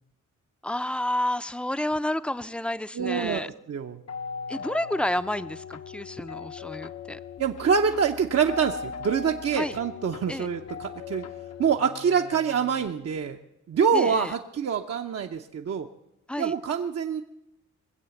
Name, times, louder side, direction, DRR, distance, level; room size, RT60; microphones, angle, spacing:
voice 1, 0.6-3.5 4.5-7.2 9.5-9.8 10.3-10.5 13.9-14.3 16.3-16.5, left 1 dB, 5° left, 13 dB, 0.5 m, -30 dB
voice 2, 2.9-4.0 7.4-11.2 11.6-13.4 13.7-15.9 16.4-17.2, right 6 dB, 50° right, 4 dB, 0.7 m, -25 dB
sound 1, 4.1-12.9, left 6 dB, 55° left, 0.8 m, -39 dB
21.0 x 7.9 x 7.0 m, 0.88 s
cardioid pair, 65°, 32 cm